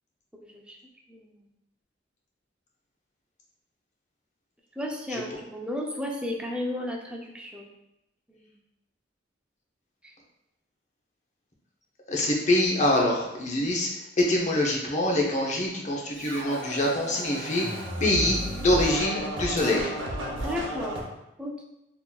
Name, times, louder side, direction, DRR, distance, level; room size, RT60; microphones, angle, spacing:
voice 1, 4.8-7.7 20.4-21.0 21.4-21.6, left 1 dB, 5° right, 0 dB, 0.4 m, -33 dB
voice 2, 12.1-13.9 14.2-17.6 18.0-19.9, left 1 dB, 40° left, -1 dB, 0.7 m, -25 dB
Scratching (performance technique), 16.2-21.0, equal, 85° right, 0.8 m, -33 dB
3.8 x 2.8 x 2.3 m, 0.89 s
head